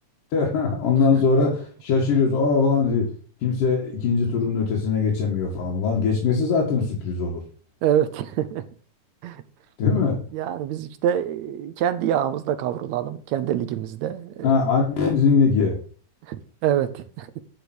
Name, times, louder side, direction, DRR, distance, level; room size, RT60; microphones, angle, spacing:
voice 1, 0.3-3.1 3.4-7.4 9.8-10.2 14.4-15.8, left 5 dB, 85° left, 3.7 m, -21 dB
voice 2, 7.8-8.6 9.2-9.4 10.3-14.9 16.3-17.4, right 10 dB, 70° right, 1.9 m, -26 dB
10.0 x 5.2 x 6.1 m
omnidirectional pair, 3.7 m